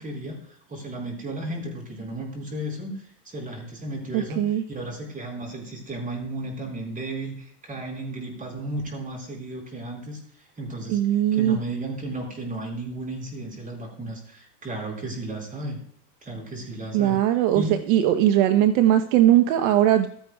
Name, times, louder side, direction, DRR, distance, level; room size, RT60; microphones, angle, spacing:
voice 1, 0.0-11.0 11.3-15.8 16.2-17.2 17.5-18.1, right 1 dB, 15° right, 1 dB, 4.4 m, -34 dB
voice 2, 4.1-4.6 10.9-11.6 16.9-20.1, right 12 dB, 60° right, 9 dB, 0.9 m, -20 dB
15.0 x 13.0 x 2.3 m, 0.64 s
supercardioid pair, 120°, 46 cm